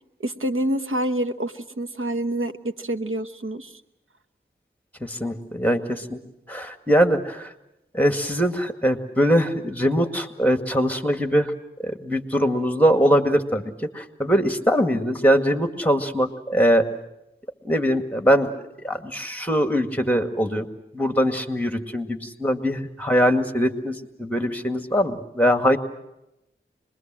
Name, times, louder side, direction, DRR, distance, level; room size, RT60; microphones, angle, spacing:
voice 1, 0.2-3.8, right 1 dB, 85° right, 8 dB, 1.2 m, -27 dB
voice 2, 5.0-6.2 6.5-7.5 7.9-11.5 11.8-16.9 17.6-18.5 18.8-20.7 20.9-25.8, equal, 5° left, 6 dB, 2.0 m, -22 dB
26.0 x 21.5 x 7.6 m, 0.91 s
wide cardioid pair, 45°, 20 cm